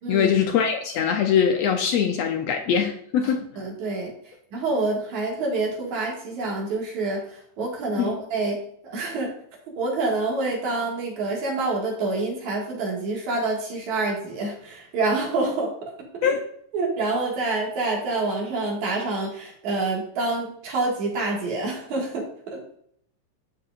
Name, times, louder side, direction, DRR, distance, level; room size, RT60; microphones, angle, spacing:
voice 1, 0.1-3.4 8.0-8.1 16.2-16.4, left 7 dB, 75° left, 4 dB, 1.6 m, -22 dB
voice 2, 3.6-8.6 8.8-9.3 9.8-15.9 16.7-22.6, right 3 dB, 75° right, -2 dB, 3.3 m, -27 dB
12.5 x 4.8 x 2.5 m, 0.67 s
omnidirectional pair, 3.4 m